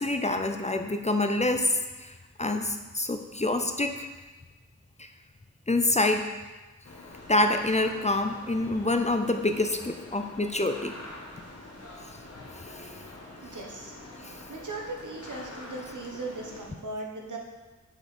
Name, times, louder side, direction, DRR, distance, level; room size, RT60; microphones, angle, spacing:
voice 1, 0.0-4.1 5.0-5.1 5.7-6.3 7.3-10.9 12.6-12.9 14.2-14.3, left 2 dB, 25° left, 6 dB, 0.5 m, -27 dB
sound 1, 6.8-16.7, left 2 dB, 55° left, 1.4 m, -46 dB
voice 2, 13.4-13.9 14.5-17.4, right 2 dB, 80° right, 0 dB, 1.3 m, -38 dB
6.4 x 5.2 x 5.0 m, 1.2 s
wide cardioid pair, 80°, 30 cm